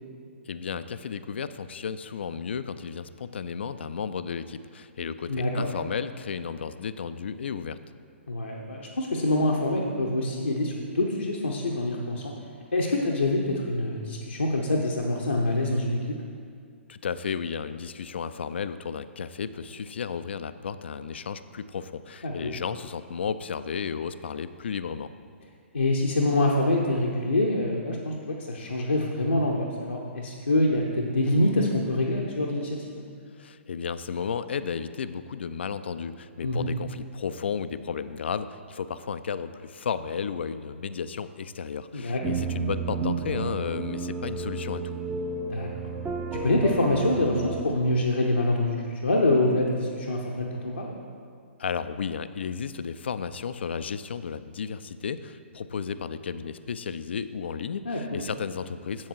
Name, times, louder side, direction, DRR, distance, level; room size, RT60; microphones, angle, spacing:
voice 1, 0.4-7.8 16.9-25.1 33.4-44.8 51.6-59.1, left 6 dB, 60° left, 13 dB, 0.3 m, -33 dB
voice 2, 5.3-5.7 8.3-12.3 12.7-16.2 22.2-22.5 25.7-33.0 36.4-36.7 41.9-42.2 45.5-45.7 46.3-51.0 57.8-58.2, left 1 dB, 75° left, -2 dB, 0.8 m, -25 dB
sound 1, 42.2-47.6, right 4 dB, 15° right, 0.6 m, -32 dB
7.5 x 7.3 x 4.6 m, 2.2 s
figure-of-eight pair, 120°, 7 cm